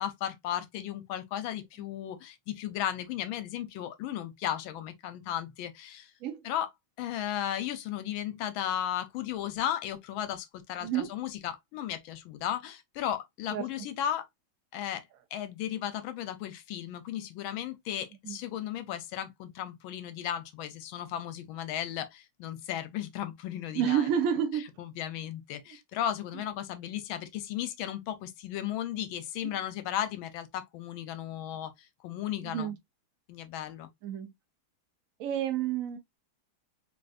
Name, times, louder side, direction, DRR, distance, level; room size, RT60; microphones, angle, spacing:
voice 1, 0.0-6.1 6.4-6.7 7.0-14.3 14.7-15.1 15.3-24.1 24.8-32.7 33.3-33.9, left 11 dB, 80° left, 1.4 m, -35 dB
voice 2, 10.8-11.1 13.5-13.7 18.2-18.4 23.7-24.6 29.4-29.6 32.4-32.8 34.0-34.3 35.2-36.0, right 9 dB, 65° right, 0.8 m, -29 dB
3.6 x 2.5 x 2.4 m
omnidirectional pair, 2.2 m